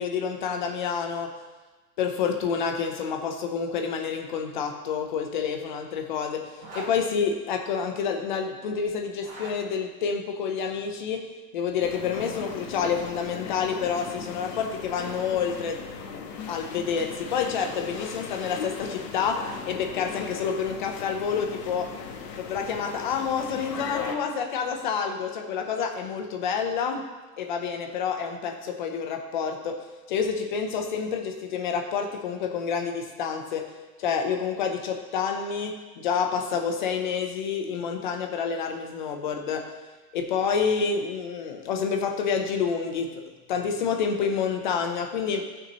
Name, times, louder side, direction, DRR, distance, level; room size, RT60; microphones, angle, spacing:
voice 1, 0.0-1.3 2.0-15.9 16.5-22.0 22.4-27.1 27.4-33.7 34.0-39.7 40.1-43.2 43.5-45.5, left 6 dB, 30° left, 4 dB, 0.7 m, -28 dB
Zipper (clothing), 6.5-6.9 9.1-9.6 11.7-12.6 14.4-15.5, right 2 dB, 35° right, 2.7 m, -43 dB
sound 1, 11.8-24.1, left 6 dB, 90° left, 1.6 m, -38 dB
17.0 x 6.2 x 3.0 m, 1.2 s
supercardioid pair, 175°, 48 cm